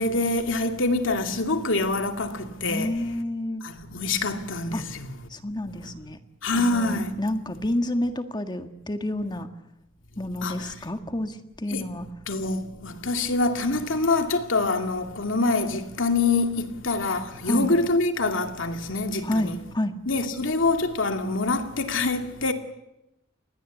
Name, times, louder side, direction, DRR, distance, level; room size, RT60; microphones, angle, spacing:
voice 1, 0.0-2.9 3.6-5.2 6.4-7.1 10.4-10.7 11.7-11.9 12.3-19.6 20.1-22.5, left 3 dB, 80° left, 2.4 m, -25 dB
voice 2, 2.6-3.6 4.7-4.8 5.3-6.2 6.5-9.5 10.2-12.1 17.5-17.7 19.2-19.9, left 1 dB, 20° left, 1.6 m, -29 dB
28.5 x 20.5 x 8.3 m
head